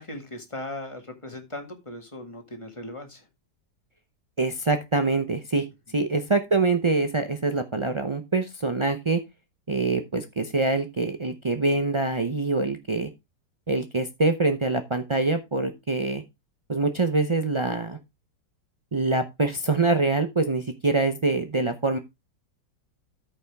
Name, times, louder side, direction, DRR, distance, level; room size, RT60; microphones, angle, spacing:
voice 1, 0.0-3.3, left 1 dB, 15° left, 4 dB, 1.8 m, -38 dB
voice 2, 4.4-5.7 5.9-9.2 9.7-13.1 13.7-16.2 16.7-18.0 18.9-22.0, right 3 dB, 50° right, 6 dB, 0.3 m, -24 dB
13.5 x 5.6 x 3.5 m, 0.22 s
omnidirectional pair, 1.9 m